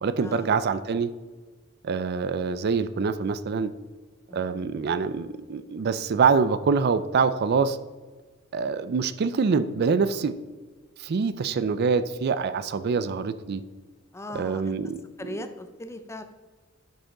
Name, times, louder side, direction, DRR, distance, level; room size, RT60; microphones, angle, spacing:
voice 1, 0.0-1.1 1.8-3.7 4.3-7.8 8.5-10.3 11.0-13.6 14.3-15.0, right 5 dB, 50° right, 13 dB, 0.4 m, -25 dB
voice 2, 14.1-14.8 15.2-16.2, left 1 dB, 15° left, 9 dB, 0.5 m, -38 dB
11.5 x 5.2 x 3.8 m, 1.3 s
head